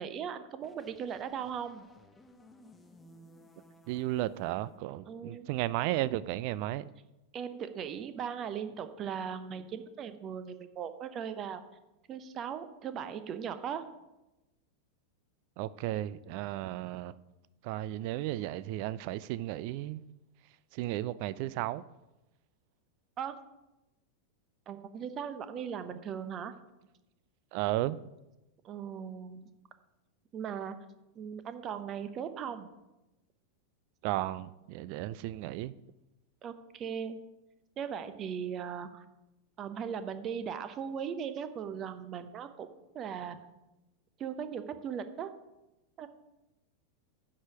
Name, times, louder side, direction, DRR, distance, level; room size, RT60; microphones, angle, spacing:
voice 1, 0.0-1.8 5.0-5.5 7.3-11.6 12.1-13.8 23.2-23.4 24.7-26.5 28.6-29.5 30.3-30.8 31.1-32.7 36.4-37.2 37.8-39.0 39.6-42.7 42.9-43.4 44.2-45.3 46.0-46.1, right 7 dB, 30° right, 0.8 m, -38 dB
sound 1, 0.6-4.8, left 1 dB, 10° left, 0.9 m, -59 dB
voice 2, 3.9-6.9 15.6-17.2 17.6-20.0 20.7-21.8 27.5-28.0 34.0-35.7, right 15 dB, 45° right, 0.4 m, -34 dB
9.8 x 4.9 x 7.1 m
figure-of-eight pair, 90°, 0 cm